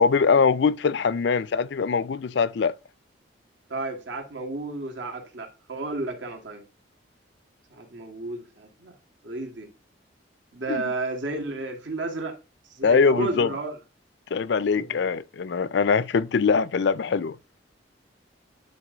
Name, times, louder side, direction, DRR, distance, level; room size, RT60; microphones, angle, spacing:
voice 1, 0.0-2.7 10.7-10.8 12.8-13.5 14.3-17.4, left 5 dB, 65° left, 0.4 m, -22 dB
voice 2, 3.7-6.6 7.7-8.9 9.2-9.7 10.5-12.4 12.6-13.8 14.8-15.1, right 2 dB, 75° right, 2.1 m, -32 dB
10.5 x 4.0 x 3.9 m
head